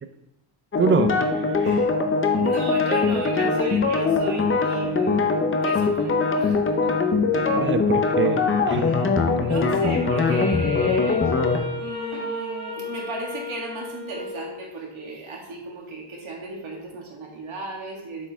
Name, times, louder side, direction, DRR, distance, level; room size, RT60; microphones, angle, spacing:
sound 1, 0.7-11.6, left 4 dB, 25° left, 0.6 m, -22 dB
voice 1, 0.8-1.8 7.3-8.8, right 5 dB, 25° right, 8 dB, 0.4 m, -25 dB
voice 2, 1.6-1.9 2.3-5.3 5.6-6.9 8.8-9.1 9.4-11.4 11.7-18.3, right 3 dB, 70° right, -1 dB, 1.7 m, -35 dB
Wind instrument woodwind instrument, 10.0-14.6, left 3 dB, 10° left, 1.4 m, -32 dB
7.2 x 4.6 x 3.4 m, 0.95 s
wide cardioid pair, 135°, 50 cm